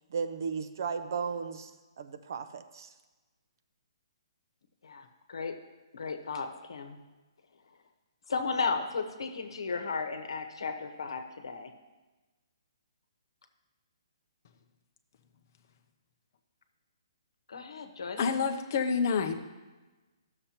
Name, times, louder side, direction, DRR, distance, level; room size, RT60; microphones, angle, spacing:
voice 1, 0.1-1.7 2.0-2.9, right 6 dB, 45° right, 9 dB, 0.5 m, -35 dB
voice 2, 4.8-5.6 5.9-7.0 8.3-11.7 17.5-18.2, left 4 dB, 75° left, 7 dB, 1.0 m, -35 dB
voice 3, 18.2-19.3, left 5 dB, 35° left, 6 dB, 0.6 m, -28 dB
13.0 x 6.7 x 2.9 m, 1.2 s
hypercardioid pair, 175°, 3 cm